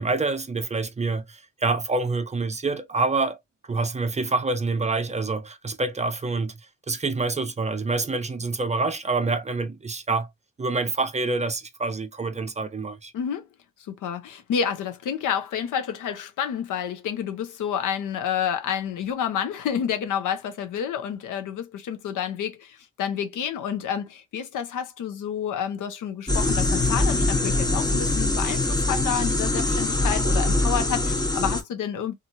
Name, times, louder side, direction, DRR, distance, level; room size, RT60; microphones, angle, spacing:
voice 1, 0.0-3.4 3.6-6.6 6.9-10.3 10.6-13.1, right 3 dB, 20° right, 0.5 m, -26 dB
voice 2, 13.1-13.5 13.9-32.1, left 8 dB, 80° left, 0.7 m, -29 dB
sound 1, 26.3-31.6, left 2 dB, 15° left, 0.9 m, -23 dB
2.8 x 2.4 x 2.7 m
cardioid pair, 90°, 31 cm